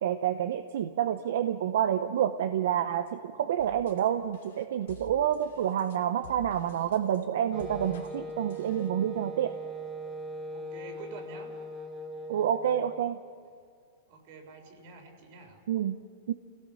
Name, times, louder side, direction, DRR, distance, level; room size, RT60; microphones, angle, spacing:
voice 1, 0.0-9.5 12.3-13.2 15.7-16.0 16.3-16.4, right 10 dB, 70° right, 10 dB, 0.8 m, -28 dB
sound 1, 3.6-8.9, left 6 dB, 80° left, 2.9 m, -52 dB
Wind instrument woodwind instrument, 7.5-13.2, right 1 dB, 10° right, 1.4 m, -40 dB
voice 2, 10.5-11.5 14.1-15.6, right 4 dB, 50° right, 5 dB, 3.8 m, -47 dB
27.0 x 17.0 x 6.4 m, 2.1 s
supercardioid pair, 160°, 0 cm